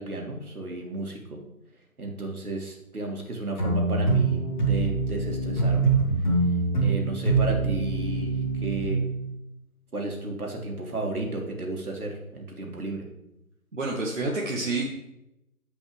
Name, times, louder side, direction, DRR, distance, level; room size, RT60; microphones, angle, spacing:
voice 1, 0.0-1.4 2.0-6.0 6.8-9.1 9.9-13.1, right 2 dB, 75° right, 0 dB, 2.4 m, -33 dB
sound 1, 3.6-8.9, right 3 dB, 30° left, 2.3 m, -24 dB
voice 2, 13.7-15.1, right 2 dB, 55° right, -2 dB, 1.3 m, -29 dB
16.0 x 5.4 x 3.3 m, 0.88 s
figure-of-eight pair, 175°, 44 cm